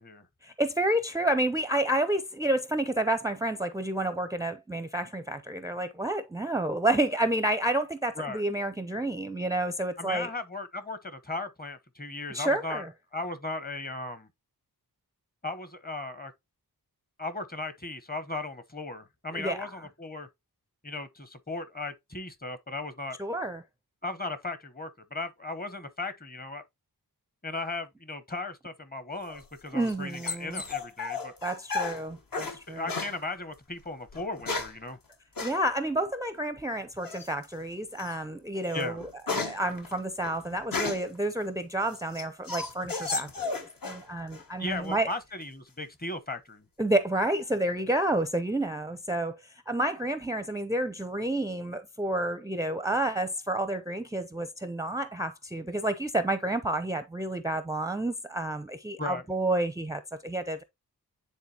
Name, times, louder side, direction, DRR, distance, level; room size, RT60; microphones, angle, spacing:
voice 1, 0.4-10.3 12.3-12.9 19.3-19.7 23.2-23.6 29.7-30.6 31.4-32.9 35.4-45.1 46.8-60.6, right 1 dB, 10° right, 0.5 m, -30 dB
voice 2, 10.0-12.8 13.1-14.3 15.4-16.3 17.2-20.3 20.8-23.2 24.0-26.6 27.4-31.3 32.7-35.0 38.7-39.0 44.6-46.6 59.0-59.2, left 2 dB, 25° left, 1.0 m, -36 dB
sound 1, 29.3-32.6 32.9-33.2 34.1-34.8 35.4-35.6 37.0-37.4 38.0-38.1 38.6-41.2 41.7-44.0 44.3-44.9, left 4 dB, 60° left, 1.3 m, -34 dB
9.6 x 3.8 x 2.8 m
wide cardioid pair, 85°, 38 cm